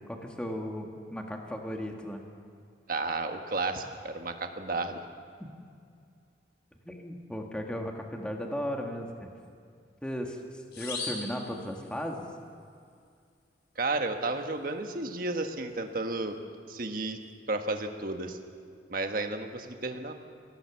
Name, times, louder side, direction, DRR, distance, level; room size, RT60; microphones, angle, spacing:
voice 1, 0.1-2.2 6.8-9.3 10.0-12.3, equal, 5° left, 2 dB, 1.6 m, -36 dB
voice 2, 2.9-5.0 13.7-16.4 16.7-17.2 17.5-18.4 18.9-20.1, right 2 dB, 50° right, 5 dB, 1.4 m, -32 dB
sound 1, 10.7-12.3, left 4 dB, 60° left, 4.7 m, -39 dB
22.5 x 17.0 x 7.1 m, 2.3 s
head